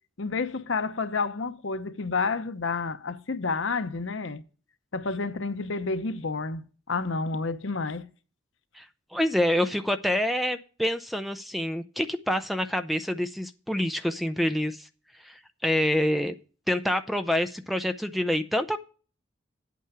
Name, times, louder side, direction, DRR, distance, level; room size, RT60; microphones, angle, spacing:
voice 1, 0.2-4.4 4.9-8.1, left 4 dB, 90° left, 0.9 m, -30 dB
voice 2, 9.1-14.9 15.2-16.3 16.7-18.8, left 1 dB, ahead, 0.6 m, -27 dB
8.8 x 8.5 x 4.8 m
head